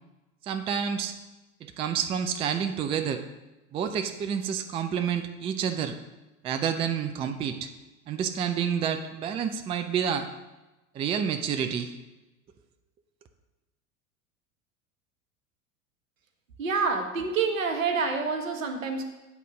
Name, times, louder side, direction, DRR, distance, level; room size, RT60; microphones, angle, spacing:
voice 1, 0.4-1.2 1.6-3.2 3.7-6.0 6.4-7.7 8.1-10.3 10.9-11.9, right 7 dB, 15° right, 7 dB, 0.3 m, -29 dB
voice 2, 16.6-19.0, right 4 dB, 75° right, 5 dB, 1.1 m, -27 dB
8.2 x 4.2 x 6.0 m, 1.1 s
figure-of-eight pair, 80°, 40 cm